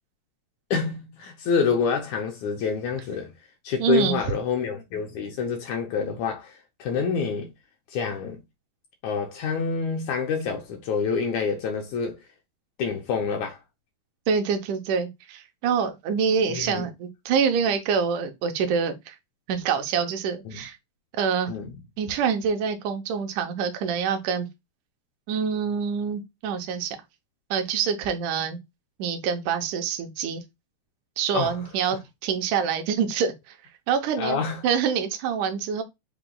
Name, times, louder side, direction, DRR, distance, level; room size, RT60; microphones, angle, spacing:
voice 1, 0.7-3.3 3.6-7.5 7.9-8.4 9.0-12.2 12.8-13.6 16.5-16.9 20.5-20.6 21.5-21.8 31.3-31.6 34.2-34.6, left 5 dB, 75° left, 1.9 m, -27 dB
voice 2, 3.8-4.2 14.3-19.2 19.5-20.8 21.2-21.5 22.0-24.5 25.3-27.0 27.5-28.6 29.0-30.4 31.2-33.5 33.9-35.8, right 6 dB, 75° right, 2.1 m, -26 dB
5.7 x 2.3 x 3.7 m
omnidirectional pair, 3.9 m